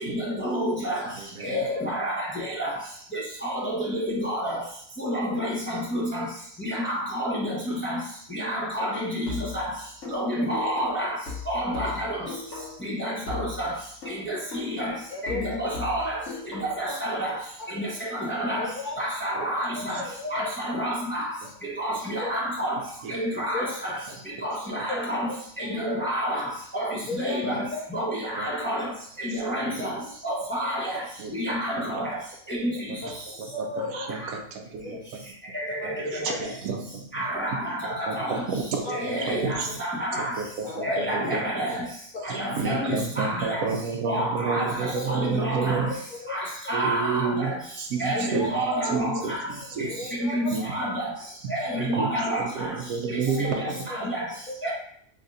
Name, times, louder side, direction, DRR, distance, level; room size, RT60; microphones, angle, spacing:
voice 1, 0.0-1.1 1.4-2.8 3.1-4.6 5.0-6.3 6.6-8.0 8.3-9.7 10.1-11.2 11.5-12.3 12.8-13.8 14.1-17.4 17.7-18.7 19.0-21.3 21.6-22.8 23.1-24.0 24.2-28.9 29.2-31.0 31.3-32.2 32.5-33.3 33.9-34.3 35.5-36.6 37.1-38.5 38.9-40.4 40.8-41.9 42.2-43.7 44.0-46.0 46.3-47.6 48.0-49.5 49.8-51.1 51.5-52.8 53.1-54.3 54.6-54.7, equal, 15° left, -4 dB, 0.5 m, -29 dB
voice 2, 1.2-1.6 19.3-19.4 19.9-20.0 23.0-23.1 24.1-24.2 27.4-27.6 28.4-28.5 29.7-29.9 31.2-31.6 31.9-32.0 32.9-33.1 33.4-33.5 33.9-35.0 35.8-37.6 38.1-39.7 40.1-41.5 42.3-45.9 46.7-47.5 47.8-48.6 48.9-50.2 50.5-50.6 51.4-51.5 51.8-52.1 52.4-53.8, right 5 dB, 75° right, 3 dB, 1.0 m, -31 dB
sound 1, 9.3-12.9 13.3-16.9, left 5 dB, 55° left, 1.3 m, -38 dB
voice 3, 15.1-15.4 16.9-17.1 17.6-17.7 18.6-19.0 19.8-20.5 22.2-22.4 23.5-24.0 24.9-25.4 25.7-26.1 27.1-27.8 29.8-30.1 33.0-33.1 33.5-34.3 34.8-35.1 35.8-35.9 36.2-36.4 37.9-38.4 38.8-39.2 40.6-40.8 42.1-42.3 44.8-45.4 45.9-46.4 48.1-48.9 49.2-49.3 49.8-50.7 51.2-51.3 53.3-53.8 54.2-54.6, left 2 dB, 80° left, -3 dB, 0.4 m, -35 dB
3.4 x 2.4 x 3.9 m, 0.66 s
omnidirectional pair, 1.6 m